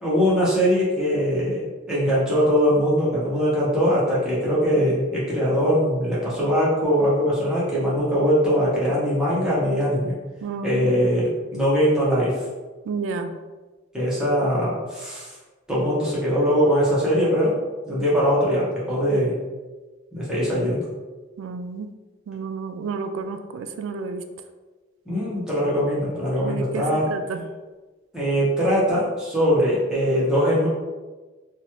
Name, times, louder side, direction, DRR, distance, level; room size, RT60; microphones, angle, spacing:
voice 1, 0.0-10.2 10.6-12.4 13.9-15.3 15.7-17.5 17.9-19.3 20.1-20.8 25.1-27.1 28.1-30.7, equal, 5° right, -9 dB, 0.8 m, -21 dB
voice 2, 10.4-10.9 12.9-13.3 21.4-21.9 22.3-24.2 26.4-27.4, right 4 dB, 85° right, 9 dB, 0.3 m, -31 dB
3.0 x 2.2 x 2.9 m, 1.3 s
head